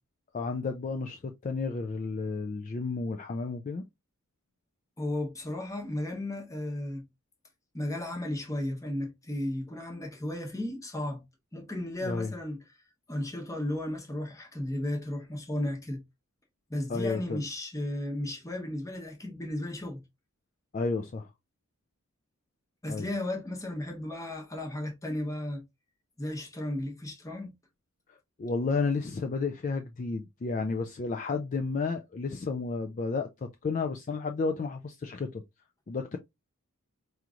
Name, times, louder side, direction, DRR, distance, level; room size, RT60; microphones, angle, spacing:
voice 1, 0.3-3.8 12.0-12.3 16.9-17.4 20.7-21.3 22.9-23.1 28.1-33.3 33.6-35.4 35.9-36.2, left 4 dB, 35° left, 0.3 m, -32 dB
voice 2, 5.0-7.0 7.7-11.2 11.5-12.6 13.1-16.0 16.7-20.0 22.8-25.6 26.2-27.5, left 1 dB, 15° left, 0.9 m, -34 dB
4.8 x 3.0 x 2.4 m
head